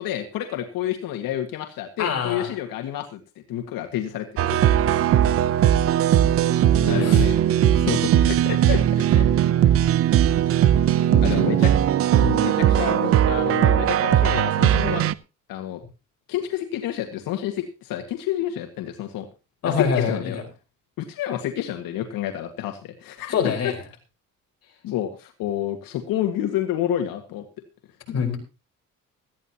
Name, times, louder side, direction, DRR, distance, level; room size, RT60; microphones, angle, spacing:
voice 1, 0.0-3.2 3.5-4.9 6.9-7.4 7.8-8.8 9.2-9.3 9.7-9.8 11.2-11.7 12.4-15.0 15.5-15.8 16.3-19.3 19.7-20.4 21.0-23.5 24.8-27.4, left 11 dB, 85° left, 5 dB, 1.9 m, -29 dB
voice 2, 2.0-2.5 6.8-7.3 11.1-11.5 12.2-12.5 19.6-20.4 23.3-23.8 28.1-28.4, left 6 dB, 45° left, 1 dB, 4.8 m, -25 dB
sound 1, 4.4-15.1, right 11 dB, 45° right, 0.6 m, -19 dB
18.0 x 13.5 x 2.9 m, 0.30 s
cardioid pair, 180°, 34 cm